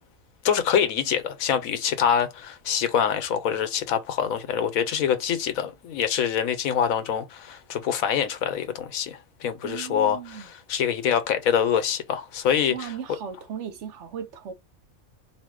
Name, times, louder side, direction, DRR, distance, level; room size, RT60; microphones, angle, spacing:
voice 1, 0.4-12.9, left 8 dB, 80° left, 1.2 m, -25 dB
voice 2, 9.6-10.5 12.7-14.5, right 8 dB, 65° right, 0.9 m, -36 dB
4.1 x 2.6 x 3.7 m
omnidirectional pair, 1.4 m